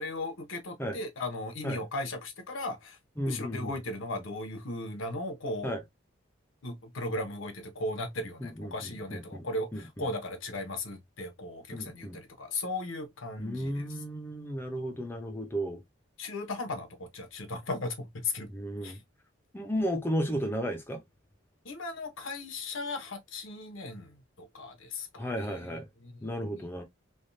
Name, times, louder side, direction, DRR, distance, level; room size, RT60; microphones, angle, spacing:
voice 1, 0.0-3.0 3.3-5.8 6.6-13.9 16.2-18.5 18.8-19.0 21.6-25.7 26.0-26.6, left 2 dB, 75° left, 0.9 m, -37 dB
voice 2, 3.2-3.8 5.6-5.8 8.4-9.4 9.7-10.1 11.7-12.2 13.4-15.8 18.5-19.0 19.5-21.0 25.2-25.9 26.2-26.8, equal, 10° left, 0.6 m, -34 dB
3.4 x 2.3 x 2.6 m
head